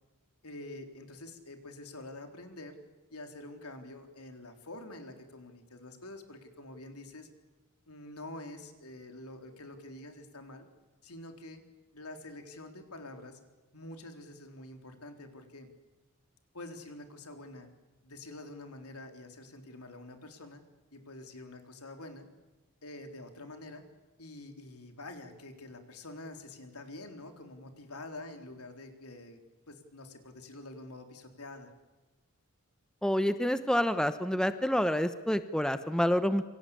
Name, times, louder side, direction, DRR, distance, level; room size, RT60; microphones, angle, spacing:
voice 1, 0.4-2.8 3.1-7.3 7.9-10.7 11.0-11.6 11.9-13.4 13.7-15.7 16.5-17.7 18.0-20.6 20.9-22.3 22.8-23.8 24.2-29.4 29.7-31.7, left 2 dB, 85° left, 5 dB, 4.0 m, -47 dB
voice 2, 33.0-36.4, equal, 5° left, 10 dB, 1.0 m, -28 dB
28.0 x 24.5 x 8.6 m, 1.1 s
head